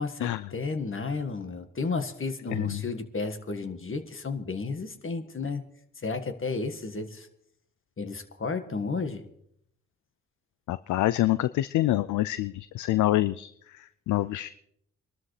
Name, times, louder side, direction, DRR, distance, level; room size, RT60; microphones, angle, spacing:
voice 1, 0.0-5.6 6.0-7.3 8.0-9.3, left 4 dB, 40° left, 8 dB, 1.7 m, -32 dB
voice 2, 2.5-2.8 10.7-14.5, left 15 dB, 70° left, 15 dB, 0.4 m, -26 dB
24.0 x 12.5 x 3.3 m, 0.71 s
hypercardioid pair, 40°, 31 cm